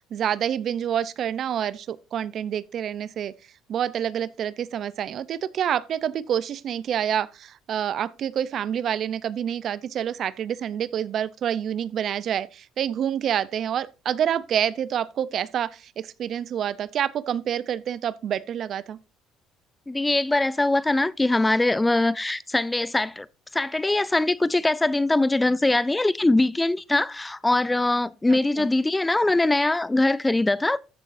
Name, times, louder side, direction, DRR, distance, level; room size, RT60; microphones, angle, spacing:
voice 1, 0.1-3.3 3.7-19.0 28.3-28.7, right 9 dB, 55° right, 0.6 m, -27 dB
voice 2, 19.9-23.3 23.5-30.8, left 2 dB, 15° left, 0.4 m, -22 dB
14.0 x 6.8 x 2.6 m
supercardioid pair, 80°, 0 cm